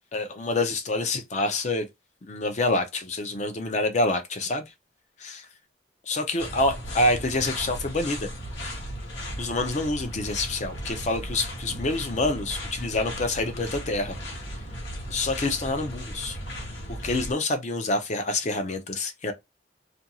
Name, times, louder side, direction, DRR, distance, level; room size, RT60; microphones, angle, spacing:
voice 1, 0.1-1.9 2.2-4.7 5.2-5.5 6.1-8.3 9.4-14.2 15.1-16.4 16.9-19.3, left 2 dB, 40° left, 0.5 m, -27 dB
sound 1, 6.4-17.3, equal, 90° left, 1.1 m, -36 dB
2.5 x 2.3 x 2.8 m
head